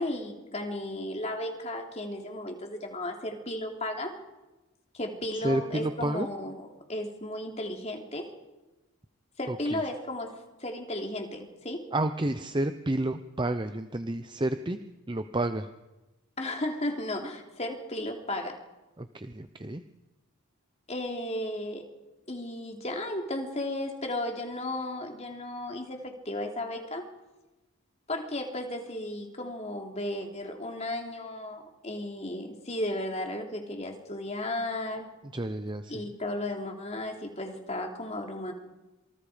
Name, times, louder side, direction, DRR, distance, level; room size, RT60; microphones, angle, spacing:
voice 1, 0.0-4.1 4.9-8.3 9.4-11.8 16.4-18.6 20.9-21.9 22.3-27.0 28.1-35.1 35.9-38.5, left 1 dB, 30° left, 2 dB, 3.2 m, -34 dB
voice 2, 5.3-6.3 9.5-9.8 11.9-14.8 15.1-15.7 19.0-19.8 35.3-36.0, right 1 dB, 20° right, 9 dB, 0.7 m, -30 dB
27.0 x 24.5 x 5.1 m, 1.1 s
head